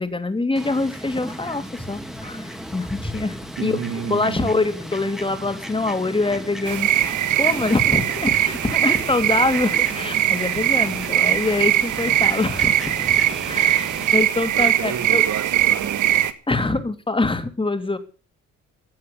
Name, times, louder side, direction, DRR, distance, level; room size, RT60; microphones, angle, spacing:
voice 1, 0.0-3.8 4.1-12.9 13.4-15.2 16.5-18.0, left 3 dB, 15° left, 9 dB, 2.8 m, -24 dB
Fowl, 0.6-14.2, equal, ahead, 2.7 m, -36 dB
voice 2, 3.6-4.6 14.5-16.3 16.6-16.7, right 7 dB, 60° right, 10 dB, 2.9 m, -31 dB
sound 1, 6.7-16.3, right 11 dB, 75° right, 1.6 m, -21 dB
16.5 x 9.3 x 7.0 m, 0.37 s
cardioid pair, 90°, 30 cm